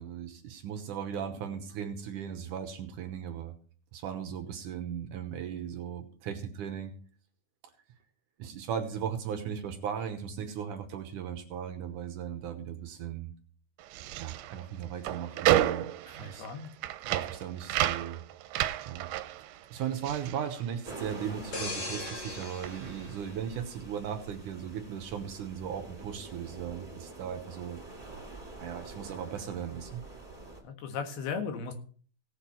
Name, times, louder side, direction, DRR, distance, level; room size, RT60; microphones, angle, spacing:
voice 1, 0.0-3.5 3.9-6.9 8.4-13.3 14.2-15.9 16.1-16.7 17.0-18.2 18.9-19.1 19.5-27.8 28.6-30.0, right 8 dB, 70° right, 6 dB, 2.2 m, -37 dB
sound 1, 13.8-21.3 21.6-23.0, right 13 dB, 85° right, 2.6 m, -32 dB
voice 2, 16.1-16.7 30.6-31.7, left 6 dB, 90° left, 6 dB, 3.6 m, -36 dB
sound 2, 20.8-30.6, right 2 dB, 10° right, 2.1 m, -47 dB
sound 3, 21.5-24.2 24.7-24.9, left 2 dB, 35° left, 1.7 m, -40 dB
18.0 x 6.6 x 4.4 m, 0.43 s
omnidirectional pair, 4.4 m